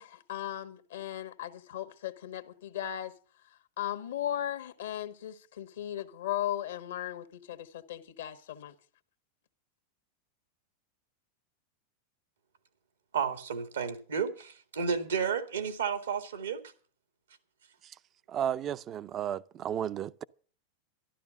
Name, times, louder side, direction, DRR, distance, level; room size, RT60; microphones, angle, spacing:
voice 1, 0.0-3.1 3.8-8.7, left 11 dB, 75° left, 1.4 m, -37 dB
voice 2, 13.1-16.6, right 6 dB, 85° right, 1.9 m, -32 dB
voice 3, 18.3-20.2, right 9 dB, 35° right, 0.6 m, -33 dB
12.5 x 12.0 x 6.3 m
hypercardioid pair, 95°, 0 cm